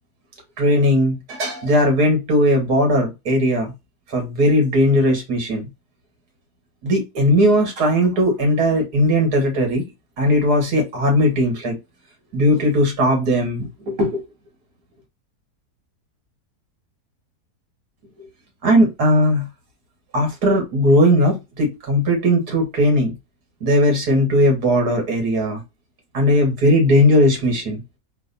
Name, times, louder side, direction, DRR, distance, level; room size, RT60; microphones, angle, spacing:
voice 1, 0.6-3.7 4.1-5.7 6.8-9.8 10.2-11.8 12.3-14.2 18.6-19.5 20.1-23.1 23.6-25.6 26.1-27.8, equal, 80° right, 2.1 m, -18 dB
4.0 x 2.3 x 3.9 m
omnidirectional pair, 1.7 m